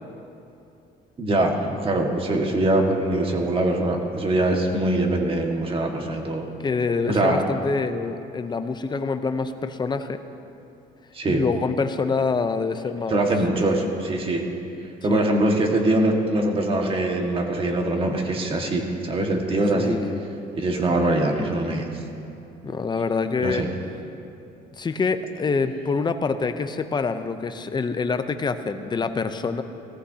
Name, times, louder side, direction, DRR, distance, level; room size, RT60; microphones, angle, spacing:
voice 1, 1.2-6.4 7.1-7.4 11.1-11.4 13.1-14.4 15.0-20.0 20.5-21.9 22.7-22.8 23.4-23.7, right 1 dB, 30° right, 1 dB, 1.8 m, -23 dB
voice 2, 6.6-10.2 11.3-13.2 13.5-13.6 15.1-15.2 19.8-20.2 22.6-23.6 24.8-29.6, left 4 dB, 25° left, 9 dB, 0.7 m, -26 dB
18.5 x 14.5 x 2.9 m, 2.7 s
cardioid pair, 110°, 17 cm